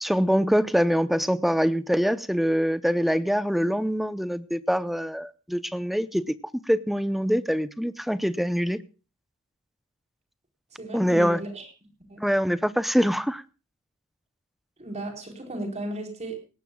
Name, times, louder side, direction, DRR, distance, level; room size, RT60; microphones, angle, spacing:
voice 1, 0.0-6.3 6.7-8.8 10.9-11.4 12.2-13.4, equal, ahead, 0.7 m, -24 dB
voice 2, 10.8-11.7 12.1-12.2 14.8-16.4, right 1 dB, 30° right, 4.5 m, -34 dB
19.5 x 17.5 x 2.3 m
head